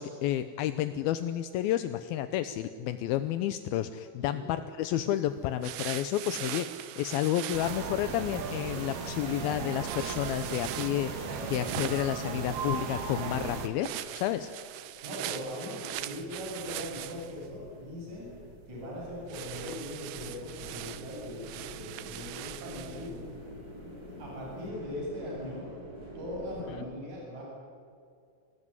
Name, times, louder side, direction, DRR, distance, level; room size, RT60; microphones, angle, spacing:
voice 1, 0.0-14.5, left 12 dB, 80° left, 10 dB, 2.3 m, -31 dB
sound 1, 5.6-7.9 9.8-12.2 13.8-17.5 19.3-23.1, right 13 dB, 90° right, 3.1 m, -41 dB
sound 2, 7.5-13.7, right 6 dB, 65° right, 3.8 m, -36 dB
sound 3, 12.3-13.4 13.9-14.0 14.5-26.8, equal, 20° right, 6.6 m, -48 dB
voice 2, 15.0-18.3 18.7-23.2 24.0-25.7 26.1-27.4, equal, 40° right, -3 dB, 9.4 m, -40 dB
26.5 x 19.5 x 9.7 m, 2.4 s
omnidirectional pair, 5.0 m